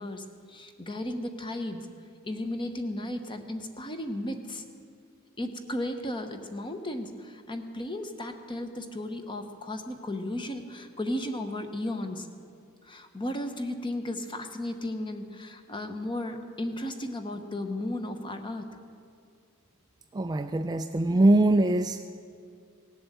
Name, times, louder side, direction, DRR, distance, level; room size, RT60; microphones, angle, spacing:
voice 1, 0.0-1.9 2.2-4.6 5.4-12.3 12.8-18.7, left 1 dB, 20° left, 7 dB, 0.9 m, -35 dB
voice 2, 20.1-22.1, right 1 dB, 15° right, 7 dB, 0.3 m, -23 dB
17.5 x 7.8 x 7.9 m, 2.3 s
head